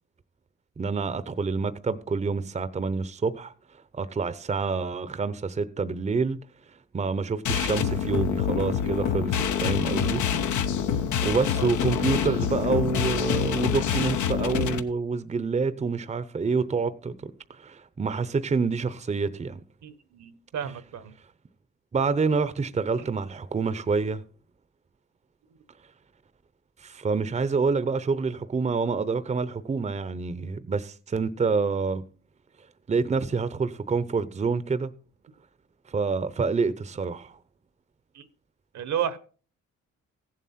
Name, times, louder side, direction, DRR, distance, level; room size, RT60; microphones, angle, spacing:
voice 1, 0.8-3.5 3.9-6.4 6.9-10.2 11.2-19.6 21.9-24.2 26.8-32.0 32.9-34.9 35.9-37.4, right 4 dB, 25° right, 0.7 m, -27 dB
sound 1, 7.4-14.8, left 8 dB, 75° left, 1.0 m, -26 dB
voice 2, 19.8-21.1 23.0-23.1 38.1-38.3 38.7-39.2, right 9 dB, 65° right, 1.0 m, -32 dB
15.5 x 7.5 x 4.2 m
cardioid pair, 90°, 30 cm